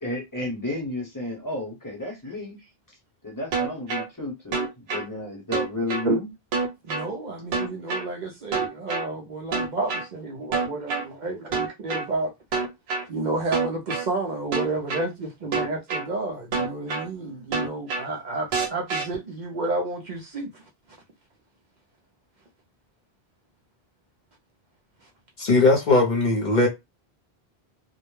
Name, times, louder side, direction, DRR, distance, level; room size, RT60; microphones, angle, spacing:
voice 1, 0.0-2.6 3.2-6.3, left 2 dB, 20° left, 0.8 m, -32 dB
sound 1, 3.5-4.0 4.5-5.0 5.5-6.0 6.5-7.0 7.5-8.0 8.5-9.0 9.5-10.0 10.5-11.0 11.5-12.0 12.5-13.0 13.5-14.0 14.5-15.0 15.5-16.0 16.5-17.0 17.5-18.0 18.5-19.0, right 4 dB, 90° right, 0.9 m, -26 dB
voice 2, 6.8-12.3 13.0-20.6, right 2 dB, 55° right, 0.6 m, -30 dB
voice 3, 25.4-26.7, left 2 dB, 55° left, 0.7 m, -19 dB
2.2 x 2.1 x 3.1 m
omnidirectional pair, 1.0 m